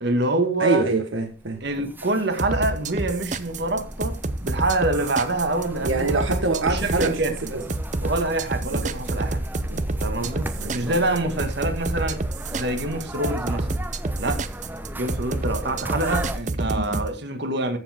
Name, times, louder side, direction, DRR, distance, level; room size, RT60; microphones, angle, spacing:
voice 1, 0.0-0.8 1.6-6.2 6.6-7.3 8.0-9.4 10.0-12.2 12.5-13.7 14.2-14.4 14.9-17.8, right 2 dB, 60° right, 1.8 m, -26 dB
voice 2, 0.6-1.9 5.8-7.6 8.7-8.9 9.7-9.9 10.6-10.9 16.6-17.1, right 2 dB, 90° right, 1.2 m, -26 dB
sound 1, 1.3-16.4, right 1 dB, 10° right, 0.8 m, -36 dB
sound 2, 2.4-17.1, right 2 dB, 40° right, 0.7 m, -28 dB
14.0 x 7.6 x 3.6 m
head